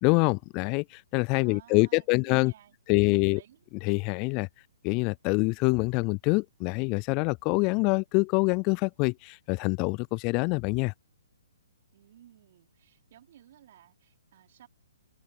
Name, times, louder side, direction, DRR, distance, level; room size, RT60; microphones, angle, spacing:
voice 1, 0.0-2.5 2.9-3.4 3.8-4.5 4.8-10.9, left 30 dB, 30° left, 0.3 m, -25 dB
voice 2, 1.4-3.6 11.9-14.7, right 12 dB, 50° right, 4.3 m, -56 dB
open air
figure-of-eight pair, 130°, 0 cm